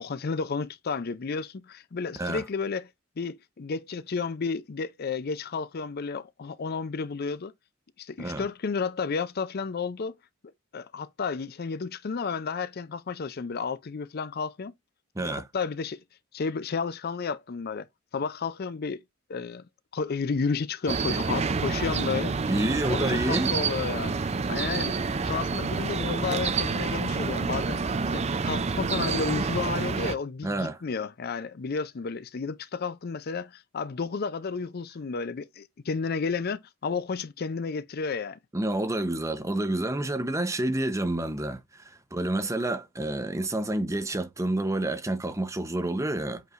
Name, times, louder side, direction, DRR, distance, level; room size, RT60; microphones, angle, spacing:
voice 1, 0.0-2.9 3.2-7.5 8.0-10.2 10.7-14.7 15.2-16.0 16.3-17.9 18.1-19.0 19.3-19.6 19.9-22.4 22.9-24.2 24.5-27.8 28.1-38.4, left 5 dB, 50° left, 0.5 m, -32 dB
voice 2, 15.1-15.5 22.5-23.5 30.4-30.8 38.5-46.4, right 1 dB, 15° right, 0.8 m, -29 dB
sound 1, 20.9-30.1, right 4 dB, 30° right, 0.5 m, -28 dB
8.0 x 4.6 x 2.5 m
head